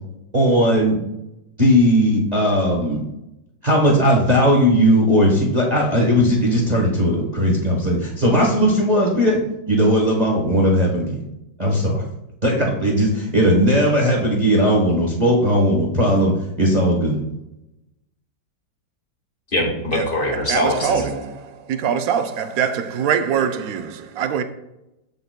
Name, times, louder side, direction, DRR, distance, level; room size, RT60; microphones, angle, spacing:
voice 1, 0.3-1.0 1.6-3.0 3.6-11.2 11.6-12.0 12.4-16.3 16.6-17.2, equal, 25° right, 1.1 m, -17 dB
voice 2, 19.5-21.2, left 1 dB, 30° left, 1.8 m, -22 dB
voice 3, 20.5-24.4, right 7 dB, 70° right, 0.8 m, -23 dB
14.0 x 5.3 x 2.2 m
omnidirectional pair, 2.1 m